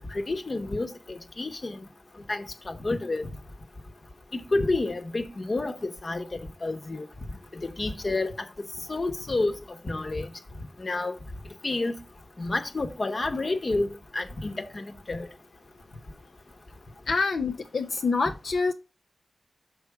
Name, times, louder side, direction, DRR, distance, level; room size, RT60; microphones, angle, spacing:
voice 1, 0.1-1.8 2.3-3.3 4.3-7.0 7.6-8.3 8.9-9.5 9.8-10.3 10.8-11.1 11.6-11.9 12.4-13.9 14.1-15.3, left 2 dB, 50° left, 1.0 m, -29 dB
voice 2, 17.1-18.7, left 4 dB, 80° left, 0.5 m, -26 dB
5.9 x 4.8 x 4.7 m
cardioid pair, 45°, 0 cm